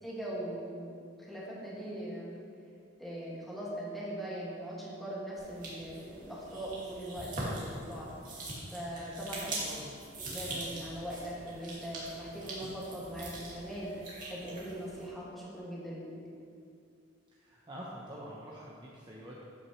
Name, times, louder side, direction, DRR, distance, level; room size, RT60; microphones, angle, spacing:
voice 1, 0.0-0.9 1.3-2.4 3.0-8.1 8.7-9.6 10.3-13.9 14.3-16.1, right 1 dB, ahead, -8 dB, 2.1 m, -40 dB
sound 1, 5.4-15.1, right 1 dB, 45° right, 2.1 m, -42 dB
voice 2, 9.4-10.0 17.3-19.4, equal, 25° right, -5 dB, 0.8 m, -46 dB
13.0 x 5.9 x 3.2 m, 2.3 s
head